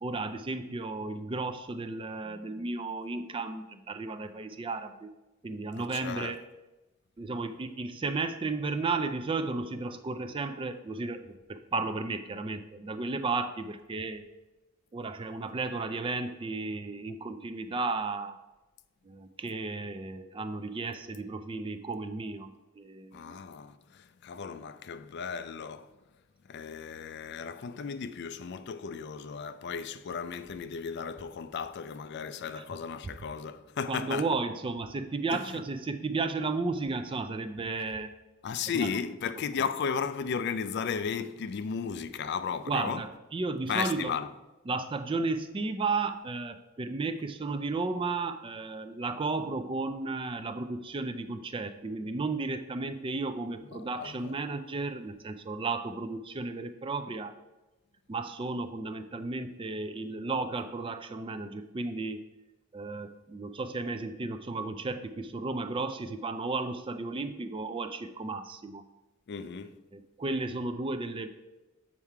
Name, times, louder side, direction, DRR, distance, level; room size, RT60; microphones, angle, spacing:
voice 1, 0.0-5.1 5.4-6.4 7.2-14.2 14.9-18.4 19.0-23.4 33.9-38.1 38.7-38.9 42.7-43.1 43.3-44.1 44.7-57.4 58.1-62.2 62.7-68.8 69.9-71.3, right 3 dB, 25° right, 0.4 m, -34 dB
voice 2, 5.8-6.4 23.1-25.9 26.5-34.3 35.3-35.6 38.4-43.1 43.7-44.3 53.7-54.3 69.3-69.8, left 6 dB, 50° left, 0.4 m, -35 dB
7.2 x 4.6 x 4.7 m
head